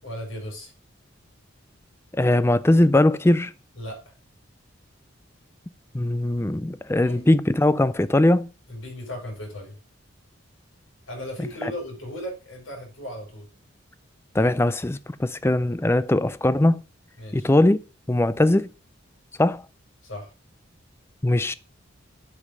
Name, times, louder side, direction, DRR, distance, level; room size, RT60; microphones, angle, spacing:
voice 1, 0.0-0.7 3.8-4.1 7.0-7.2 8.7-9.8 11.1-13.5 17.2-17.5 20.0-20.3, left 1 dB, 85° left, 5.4 m, -36 dB
voice 2, 2.1-3.5 5.9-8.5 11.6-11.7 14.3-16.8 17.3-17.8 18.1-18.7 19.4-19.6 21.2-21.5, left 1 dB, 10° left, 0.4 m, -20 dB
8.2 x 5.4 x 5.4 m
head